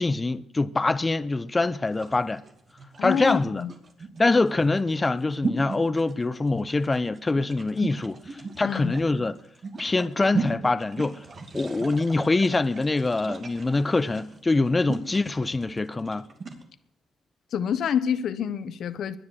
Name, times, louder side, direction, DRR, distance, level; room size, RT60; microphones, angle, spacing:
voice 1, 0.0-2.4 3.0-3.6 4.2-9.4 9.8-11.2 11.5-16.3, left 3 dB, 20° left, 0.8 m, -24 dB
sound 1, 1.9-16.6, right 4 dB, 45° right, 2.6 m, -36 dB
voice 2, 3.0-3.7 8.6-8.9 17.5-19.2, left 8 dB, 70° left, 1.1 m, -27 dB
20.5 x 10.5 x 6.4 m
cardioid pair, 90°, 0 cm